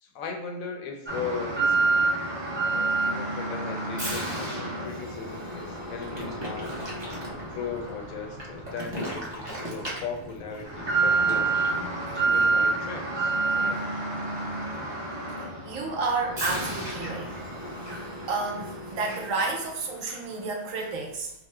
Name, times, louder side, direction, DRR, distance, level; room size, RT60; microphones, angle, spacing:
voice 1, 0.0-1.8 2.6-6.7 7.4-11.5 12.1-13.8, left 5 dB, 80° left, 3 dB, 1.0 m, -38 dB
Alarm, 1.1-19.7 20.0-20.2 20.8-20.9, right 3 dB, 30° right, 0.5 m, -29 dB
voice 2, 15.6-17.3 17.9-21.3, right 3 dB, 75° right, 2 dB, 1.0 m, -31 dB
2.9 x 2.0 x 3.2 m, 0.85 s
omnidirectional pair, 1.4 m